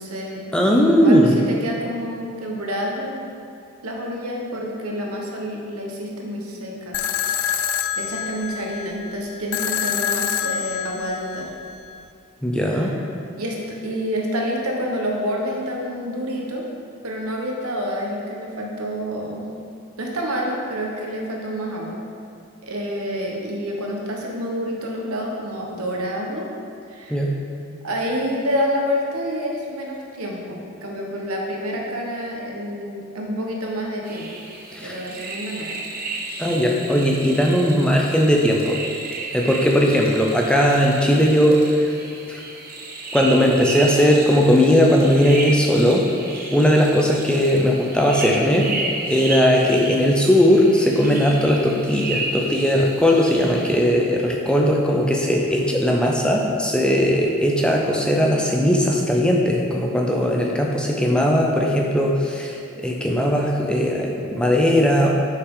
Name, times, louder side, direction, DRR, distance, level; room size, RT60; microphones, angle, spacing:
voice 1, 0.0-3.2 3.8-7.0 8.0-11.5 12.6-13.0 13.4-16.6 17.0-19.5 20.0-22.0 22.6-26.4 26.9-27.3 27.8-34.3 34.8-35.8, equal, 85° right, -1 dB, 1.1 m, -28 dB
voice 2, 0.5-1.4 12.4-12.9 27.1-27.3 34.7-35.0 36.4-38.8 39.3-41.9 42.3-42.4 43.1-46.1 46.5-48.7 49.1-62.6 62.8-65.1, equal, 5° left, -1 dB, 0.4 m, -18 dB
sound 1, 6.9-12.0, left 9 dB, 80° left, 0.3 m, -26 dB
sound 2, 34.0-53.8, right 2 dB, 40° right, 0.8 m, -33 dB
6.5 x 5.7 x 3.8 m, 2.5 s
head